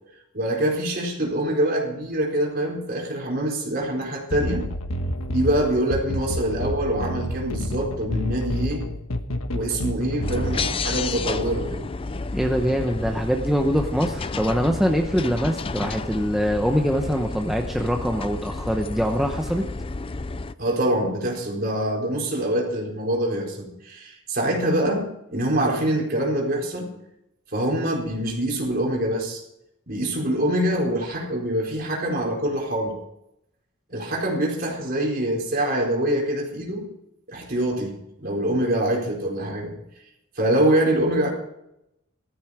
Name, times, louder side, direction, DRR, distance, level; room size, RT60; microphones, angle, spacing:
voice 1, 0.3-4.7 5.3-8.9 9.5-11.9 20.6-26.9 27.5-29.4 29.9-33.0 33.9-36.9 37.3-39.8 40.4-41.3, right 1 dB, 45° right, -1 dB, 4.4 m, -25 dB
sound 1, 4.3-10.7, equal, 85° left, 1.3 m, -29 dB
sound 2, 10.2-20.5, left 3 dB, 25° left, 0.4 m, -31 dB
voice 2, 12.3-19.6, equal, ahead, 2 dB, 0.9 m, -23 dB
16.0 x 13.5 x 5.0 m, 0.82 s
head